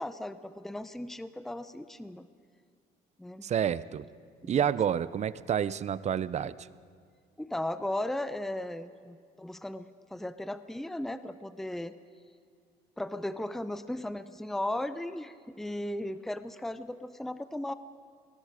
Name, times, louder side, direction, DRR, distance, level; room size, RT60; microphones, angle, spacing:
voice 1, 0.0-2.3 3.2-3.4 4.4-4.6 7.4-9.8 10.1-11.9 13.0-17.7, left 1 dB, ahead, 12 dB, 0.7 m, -36 dB
voice 2, 3.4-4.0 4.5-6.7, right 9 dB, 40° right, 17 dB, 0.6 m, -29 dB
27.5 x 20.0 x 5.1 m, 2.1 s
cardioid pair, 110°, 17 cm